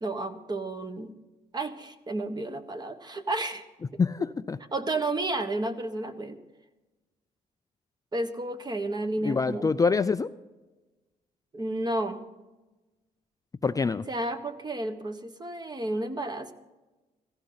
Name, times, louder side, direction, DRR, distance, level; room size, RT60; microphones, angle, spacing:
voice 1, 0.0-1.1 1.5-3.6 3.9-4.0 4.7-6.4 8.1-9.7 11.5-12.2 14.1-16.5, right 2 dB, 25° right, 8 dB, 1.3 m, -31 dB
voice 2, 4.0-4.6 9.2-10.3 13.6-14.0, left 4 dB, 25° left, 11 dB, 0.4 m, -25 dB
16.0 x 15.0 x 3.9 m, 1.1 s
cardioid pair, 100°, 15 cm